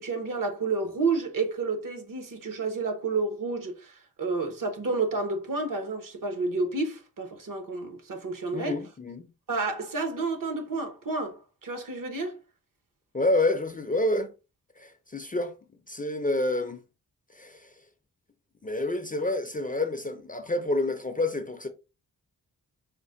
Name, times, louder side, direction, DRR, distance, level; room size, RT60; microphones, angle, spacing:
voice 1, 0.0-8.7 9.5-12.4, right 3 dB, 60° right, 1.1 m, -30 dB
voice 2, 8.5-9.3 13.1-14.3 14.8-15.5 15.9-16.8 17.3-17.7 18.6-21.7, left 2 dB, 20° left, 0.5 m, -28 dB
5.0 x 2.1 x 3.7 m
wide cardioid pair, 130°, 38 cm